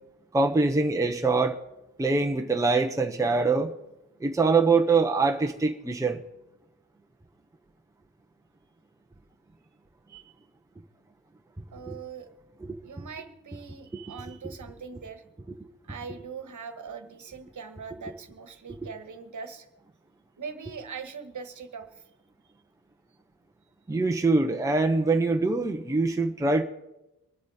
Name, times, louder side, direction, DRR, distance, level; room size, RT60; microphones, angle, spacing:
voice 1, 0.3-1.6 2.0-3.7 4.2-6.2 10.1-10.2 11.9-12.0 12.7-12.8 13.9-14.1 23.9-26.6, right 3 dB, 10° right, 4 dB, 0.8 m, -24 dB
voice 2, 11.7-12.3 12.8-15.2 15.8-19.7 20.4-22.1, right 5 dB, 55° right, 8 dB, 1.4 m, -41 dB
24.5 x 8.3 x 4.2 m, 0.92 s
wide cardioid pair, 175°, 35 cm